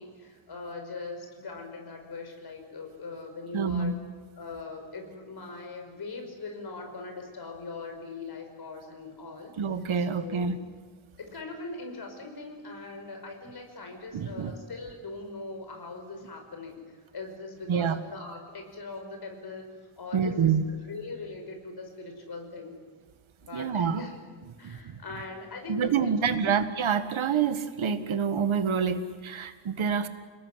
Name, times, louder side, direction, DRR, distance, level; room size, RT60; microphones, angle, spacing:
voice 1, 0.0-4.0 4.4-9.5 10.0-10.5 11.2-19.6 20.0-22.8 23.4-24.2 24.6-26.4, left 3 dB, 50° left, 4 dB, 5.7 m, -41 dB
voice 2, 3.5-3.9 9.6-10.6 14.1-14.5 17.7-18.0 20.1-20.6 23.5-24.0 24.6-25.0 25.7-30.1, right 6 dB, 75° right, 9 dB, 1.8 m, -27 dB
30.0 x 19.5 x 9.8 m, 1.5 s
wide cardioid pair, 175°, 48 cm